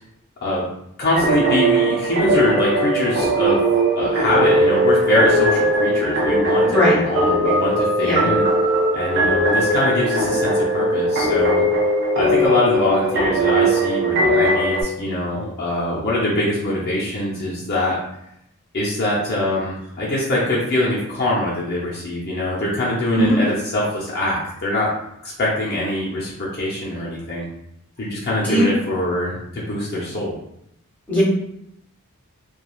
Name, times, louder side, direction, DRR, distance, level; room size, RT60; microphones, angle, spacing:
voice 1, 1.0-3.6 4.0-8.4 8.9-11.6 12.1-18.0 18.7-24.9 25.2-27.5 28.0-30.4, left 1 dB, 45° left, -6 dB, 0.6 m, -23 dB
sound 1, 1.2-14.8, right 1 dB, 55° right, 0.6 m, -19 dB
voice 2, 6.7-7.0 8.0-8.2 23.2-23.4 28.5-28.6 31.1-31.2, equal, 5° left, -8 dB, 1.0 m, -17 dB
3.0 x 2.3 x 2.3 m, 0.78 s
head